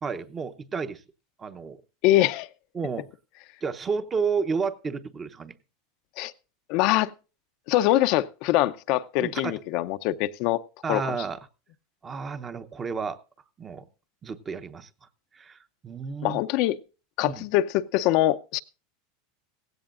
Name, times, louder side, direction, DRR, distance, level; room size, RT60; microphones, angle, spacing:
voice 1, 0.0-1.0 1.4-1.8 2.7-3.1 3.6-5.5 9.2-9.6 10.8-11.4 12.0-13.2 13.6-13.9 14.2-14.9 15.3-15.6 15.8-16.4 17.3-17.4, right 5 dB, 20° right, 0.9 m, -31 dB
voice 2, 2.0-2.5 6.2-6.3 6.7-7.1 7.7-10.6 10.9-11.2 16.2-16.8 17.2-18.6, left 15 dB, 55° left, 0.6 m, -23 dB
17.0 x 16.0 x 2.5 m
supercardioid pair, 145°, 0 cm